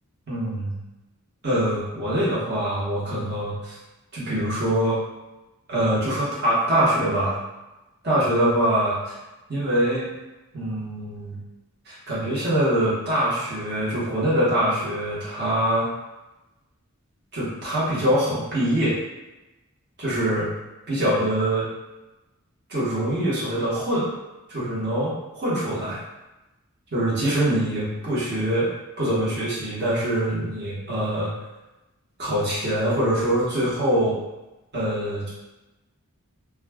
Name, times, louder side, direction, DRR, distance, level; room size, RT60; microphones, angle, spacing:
voice 1, 0.3-0.8 1.4-3.7 4.1-5.0 5.7-7.4 8.0-9.0 9.5-10.1 10.5-11.4 11.9-15.9 17.3-19.0 20.0-20.5 20.9-21.7 22.7-24.1 24.5-26.0 26.9-28.7 29.0-31.3 32.2-34.1 34.7-35.3, right 1 dB, 45° right, -9 dB, 1.0 m, -24 dB
2.3 x 2.3 x 3.3 m, 1.0 s
head